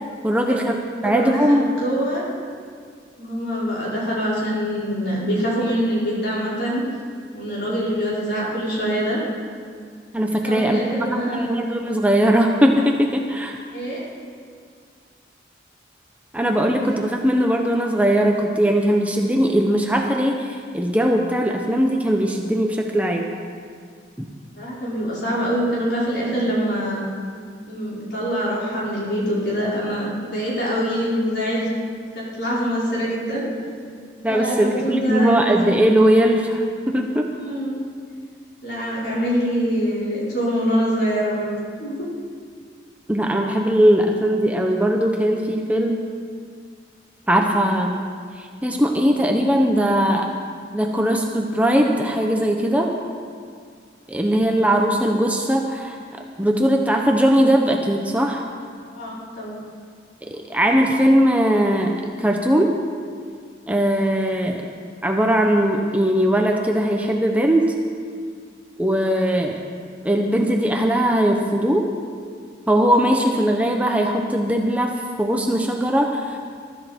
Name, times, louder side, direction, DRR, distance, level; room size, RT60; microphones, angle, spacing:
voice 1, 0.2-0.8 1.0-1.7 10.1-11.1 11.3-13.6 16.3-23.3 34.2-37.3 43.1-46.0 47.3-48.1 48.4-50.3 50.7-52.9 54.1-56.0 56.4-58.5 60.3-62.7 63.7-64.7 65.0-67.6 68.8-69.6 70.0-71.9 72.7-76.4, equal, 10° right, 1 dB, 0.9 m, -19 dB
voice 2, 1.0-2.2 3.2-6.8 7.3-9.2 10.4-11.7 13.7-14.0 24.6-27.0 27.7-31.7 32.1-33.4 34.3-35.6 37.4-37.8 38.6-41.5 41.8-42.1 58.9-59.6, equal, 60° left, -7 dB, 5.4 m, -24 dB
22.0 x 13.0 x 4.5 m, 2.1 s
head